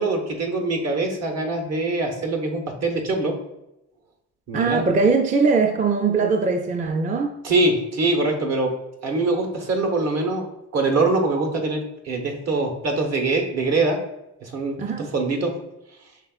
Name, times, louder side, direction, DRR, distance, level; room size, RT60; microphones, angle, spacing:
voice 1, 0.0-3.3 4.5-4.8 7.4-8.7 9.0-10.5 10.7-14.0 14.4-14.8 15.1-15.5, right 2 dB, 60° right, 3 dB, 1.1 m, -23 dB
voice 2, 4.5-7.3 14.8-15.1, right 4 dB, 25° right, 4 dB, 0.4 m, -21 dB
5.4 x 3.6 x 2.4 m, 0.89 s
cardioid pair, 90°, 30 cm